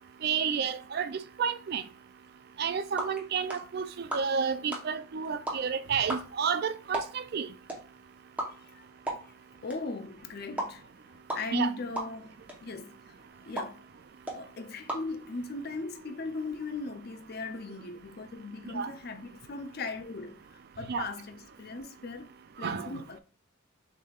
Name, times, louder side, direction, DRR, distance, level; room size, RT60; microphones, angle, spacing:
voice 1, 0.2-1.8 2.6-7.5 11.5-11.7 18.7-18.9 20.9-21.1 22.6-23.0, right 6 dB, 50° right, 0.3 m, -31 dB
sound 1, 2.5-15.8, right 1 dB, 5° right, 0.9 m, -41 dB
voice 2, 9.6-10.9 11.3-12.3 12.6-12.9 13.4-13.8 14.3-20.4 20.8-22.3 22.6-23.2, left 3 dB, 45° left, 0.5 m, -38 dB
6.4 x 3.4 x 2.4 m
head